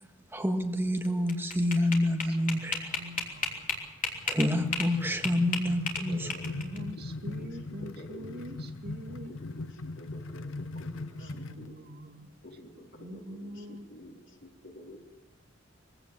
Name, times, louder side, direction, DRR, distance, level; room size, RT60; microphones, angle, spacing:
voice 1, 0.3-2.9 4.3-6.3, left 1 dB, 10° right, 5 dB, 1.6 m, -28 dB
sound 1, 1.0-4.9 5.2-6.8, left 4 dB, 45° left, 3.3 m, -33 dB
voice 2, 2.8-3.7 6.3-9.4 11.0-12.3 12.7-13.9, equal, 55° right, 5 dB, 1.9 m, -45 dB
sound 2, 4.1-11.7, left 2 dB, 90° left, 0.7 m, -40 dB
voice 3, 6.1-8.4 9.1-11.8 12.4-15.0, left 1 dB, 70° left, 1 dB, 3.9 m, -49 dB
23.0 x 16.0 x 7.5 m, 1.3 s
head